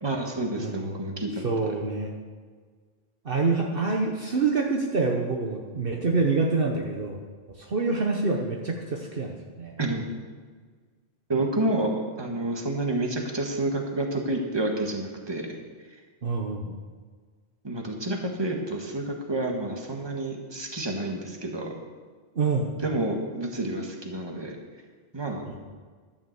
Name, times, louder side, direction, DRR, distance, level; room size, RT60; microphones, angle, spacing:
voice 1, 0.0-1.5 9.8-10.2 11.3-15.5 17.6-21.8 22.8-24.6 25.1-25.4, right 2 dB, 20° right, 1 dB, 1.6 m, -29 dB
voice 2, 0.6-2.2 3.2-7.2 7.6-9.8 16.2-16.7 22.3-22.7 25.5-25.6, right 3 dB, 55° right, 1 dB, 1.2 m, -27 dB
12.5 x 7.1 x 8.0 m, 1.5 s
omnidirectional pair, 1.2 m